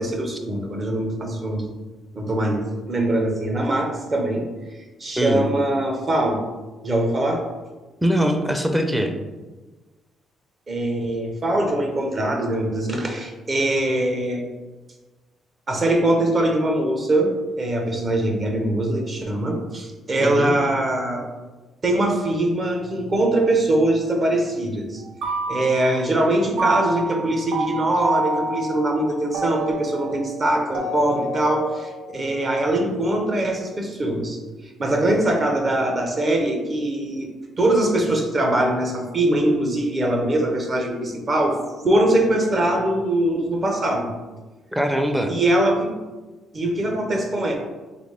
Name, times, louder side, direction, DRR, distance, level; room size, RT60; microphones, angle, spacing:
voice 1, 0.0-1.6 2.1-4.5 5.0-6.4 6.8-7.5 10.7-14.5 15.7-21.3 21.8-25.0 25.5-34.4 34.8-41.6 41.8-44.1 45.3-46.0 46.5-47.6, right 1 dB, 40° right, 2 dB, 0.8 m, -22 dB
voice 2, 5.2-5.5 8.0-9.1 20.2-20.5 44.7-45.3, equal, 10° right, 5 dB, 0.5 m, -22 dB
sound 1, 25.0-26.2 26.6-32.7, right 2 dB, 80° right, 0.8 m, -28 dB
4.0 x 3.0 x 3.3 m, 1.2 s
cardioid pair, 90°, 0 cm